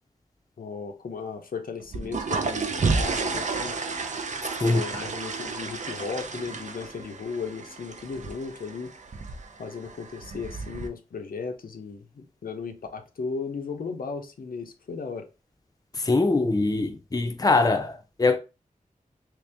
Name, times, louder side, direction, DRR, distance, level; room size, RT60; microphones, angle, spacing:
voice 1, 0.6-3.8 4.6-8.9 9.6-15.3, left 5 dB, 85° left, 0.6 m, -36 dB
sound 1, 1.8-10.9, right 4 dB, 55° right, 0.5 m, -31 dB
voice 2, 4.6-5.0 15.9-18.4, left 3 dB, 25° left, 0.5 m, -23 dB
3.2 x 2.8 x 3.3 m
wide cardioid pair, 75°, 15 cm